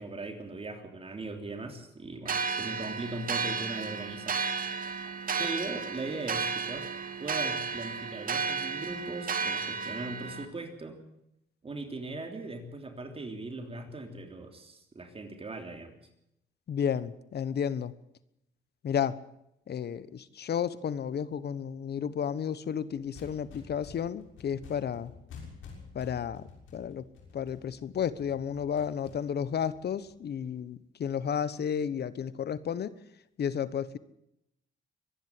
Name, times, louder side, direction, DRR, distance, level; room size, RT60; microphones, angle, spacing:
voice 1, 0.0-4.4 4.8-5.1 5.4-6.9 7.2-11.0 11.6-16.0, right 2 dB, 30° right, 5 dB, 3.3 m, -39 dB
sound 1, 2.3-10.5, right 5 dB, 45° right, 2.3 m, -33 dB
voice 2, 16.7-17.9 18.8-19.2 19.7-25.1 25.9-26.5 26.7-27.1 27.3-32.9 33.4-34.0, left 8 dB, 55° left, 17 dB, 1.2 m, -32 dB
sound 2, 22.9-30.4, left 5 dB, 80° left, 6.6 m, -50 dB
24.0 x 11.0 x 9.8 m, 0.80 s
cardioid pair, 90°, 20 cm